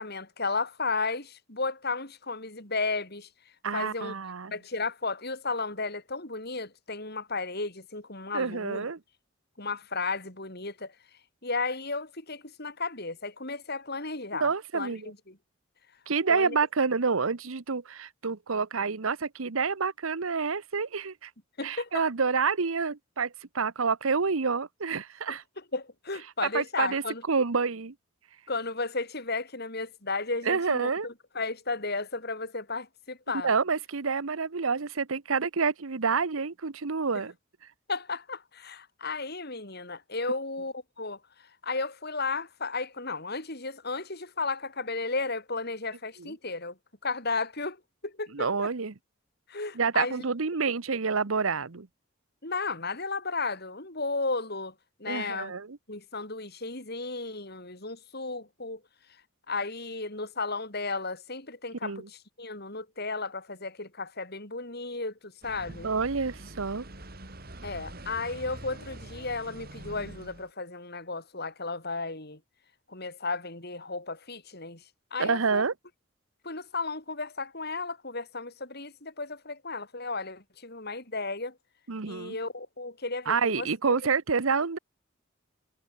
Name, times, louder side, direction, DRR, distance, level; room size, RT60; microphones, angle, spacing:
voice 1, 0.0-3.3 3.7-4.1 4.5-8.9 9.6-10.9 11.4-15.4 16.3-16.6 21.6-22.0 25.3-25.4 25.7-27.2 28.5-33.5 37.9-46.8 47.0-47.8 48.0-48.7 49.5-50.1 52.4-54.7 55.0-55.5 55.9-58.8 59.5-65.9 67.6-72.4 72.9-74.8 75.1-75.6 76.4-81.6 82.0-84.0, left 3 dB, 50° left, 7.7 m, -34 dB
voice 2, 3.6-4.5 8.3-9.0 14.4-15.1 16.1-21.3 21.6-25.4 26.4-27.0 27.3-27.9 30.5-31.1 33.4-37.3 46.2-46.3 48.3-48.9 49.7-51.9 55.1-55.8 61.8-62.1 65.8-66.8 75.2-75.7 81.9-82.4 83.3-84.8, right 5 dB, 85° right, 1.0 m, -28 dB
sound 1, 65.4-70.5, right 1 dB, 50° right, 4.3 m, -44 dB
head